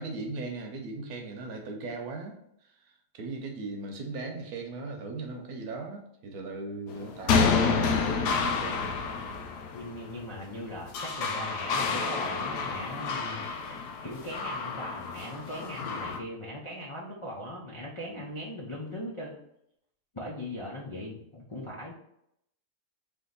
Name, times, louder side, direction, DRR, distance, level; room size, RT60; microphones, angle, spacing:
voice 1, 0.0-2.3 2.8-9.0, right 3 dB, 70° right, 3 dB, 1.2 m, -38 dB
sound 1, 6.9-16.2, left 5 dB, 80° left, 1.2 m, -29 dB
voice 2, 9.7-13.4 14.0-19.4 20.1-21.9, left 1 dB, 55° left, -5 dB, 0.3 m, -39 dB
3.5 x 3.0 x 3.9 m, 0.75 s
omnidirectional pair, 1.7 m